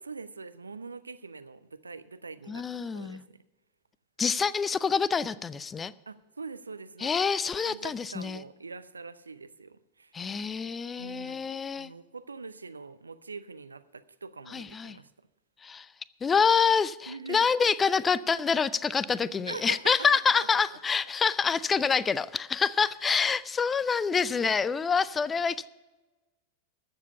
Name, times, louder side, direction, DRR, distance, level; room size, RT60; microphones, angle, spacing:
voice 1, 0.0-3.4 6.1-7.3 7.6-10.1 11.0-11.5 11.8-15.1 17.1-17.5 19.5-20.8 25.4-25.5, right 4 dB, 75° right, 0.5 m, -43 dB
voice 2, 2.5-3.2 4.2-5.9 7.0-8.4 10.1-11.9 14.5-15.0 15.6-15.9 16.2-25.7, left 5 dB, 20° left, 0.4 m, -27 dB
13.5 x 7.4 x 6.8 m
figure-of-eight pair, 90°, 0 cm